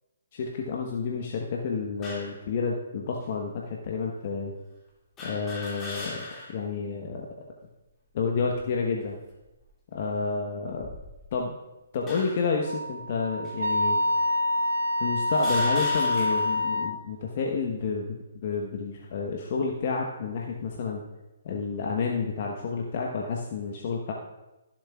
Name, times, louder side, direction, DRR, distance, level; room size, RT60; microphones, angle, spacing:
voice 1, 0.3-4.5 5.2-7.3 8.1-9.2 9.9-10.9 11.3-11.6 11.9-14.0 15.0-21.0 21.4-24.1, left 5 dB, 50° left, 0 dB, 1.1 m, -30 dB
sound 1, 2.0-2.4 3.2-3.3 5.2-6.6 7.1-7.2 8.3-8.7 9.4-9.7 10.6-11.4 12.1-12.6 13.4-13.6 14.5-14.6 15.3-16.6, left 2 dB, 20° left, 2.2 m, -39 dB
Wind instrument woodwind instrument, 12.6-17.0, left 1 dB, 85° right, 0.6 m, -26 dB
14.5 x 7.3 x 2.4 m, 1.0 s
hypercardioid pair, 140°, 0 cm